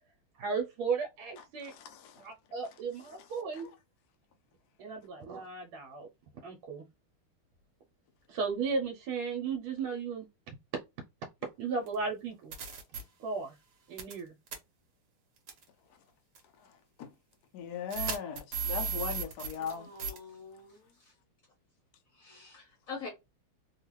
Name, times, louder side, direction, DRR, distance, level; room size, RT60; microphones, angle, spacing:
voice 1, 0.4-1.7 2.2-3.7 4.8-6.1 6.4-6.8 8.3-10.8 11.6-12.5 13.2-13.5 13.9-14.3, right 5 dB, 75° right, 1.5 m, -35 dB
voice 2, 1.4-2.2 3.2-3.3 3.5-3.7 16.6-17.1 17.5-19.9, left 7 dB, 75° left, 0.9 m, -40 dB
sound 1, 11.9-12.0 12.5-13.0 14.0-14.2 14.5-14.6 15.5-15.6 16.4-16.5 17.9-19.7 20.0-20.2, right 4 dB, 55° right, 1.3 m, -35 dB
voice 3, 19.6-21.1 22.1-23.1, left 4 dB, 50° left, 1.0 m, -46 dB
3.5 x 2.4 x 3.0 m
omnidirectional pair, 2.4 m